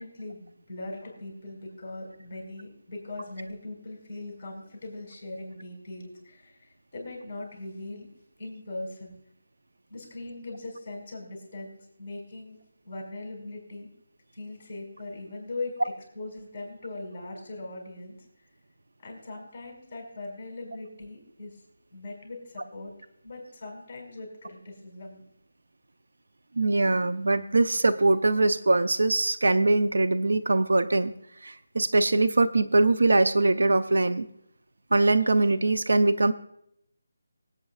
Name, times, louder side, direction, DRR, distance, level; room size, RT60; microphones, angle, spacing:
voice 1, 0.0-8.1 8.4-9.2 9.9-12.6 12.8-13.9 14.3-18.2 19.0-21.6 21.9-22.9 23.2-25.2, left 2 dB, 15° left, -2 dB, 5.4 m, -40 dB
voice 2, 26.5-31.1 31.4-34.3 34.9-36.3, right 2 dB, 80° right, 11 dB, 0.6 m, -22 dB
25.0 x 8.8 x 2.4 m, 0.74 s
figure-of-eight pair, 175°, 0 cm